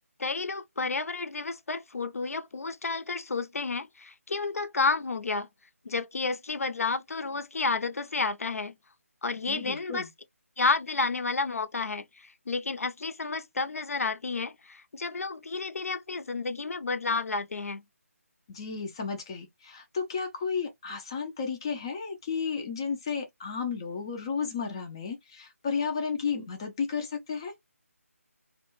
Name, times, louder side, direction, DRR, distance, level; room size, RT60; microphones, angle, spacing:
voice 1, 0.2-5.5 5.8-8.7 9.2-10.1 10.6-17.8, left 4 dB, 70° left, 0.6 m, -31 dB
voice 2, 9.4-10.1 18.5-27.5, left 5 dB, 20° left, 0.4 m, -33 dB
2.3 x 2.2 x 2.9 m
figure-of-eight pair, 160°, 8 cm